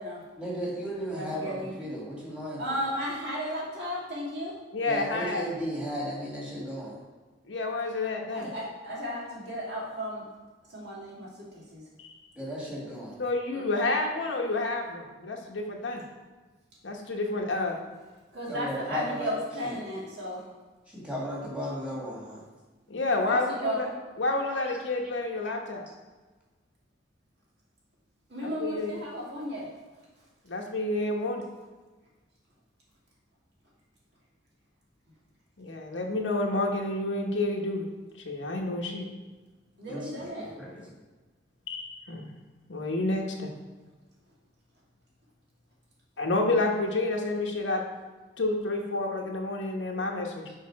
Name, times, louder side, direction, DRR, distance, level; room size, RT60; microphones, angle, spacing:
voice 1, 0.4-2.6 4.9-7.0 12.3-13.2 18.5-19.3 19.6-19.7 20.9-22.4 24.7-24.8 39.9-40.7, equal, 5° right, -5 dB, 2.0 m, -35 dB
voice 2, 1.1-1.7 2.6-4.6 8.3-10.3 10.7-11.8 13.5-13.9 18.3-20.4 23.2-23.9 28.3-29.7 39.8-40.5, equal, 65° right, -5 dB, 2.5 m, -34 dB
voice 3, 4.7-5.5 7.5-8.5 12.0-12.1 13.2-16.0 16.8-17.8 22.9-23.9 24.2-25.9 28.4-28.9 30.5-31.4 35.6-37.9 38.2-39.1 41.7-42.3 42.7-43.5 46.2-47.8 48.4-50.5, left 2 dB, 85° left, 1 dB, 1.1 m, -29 dB
6.6 x 5.1 x 4.8 m, 1.3 s
head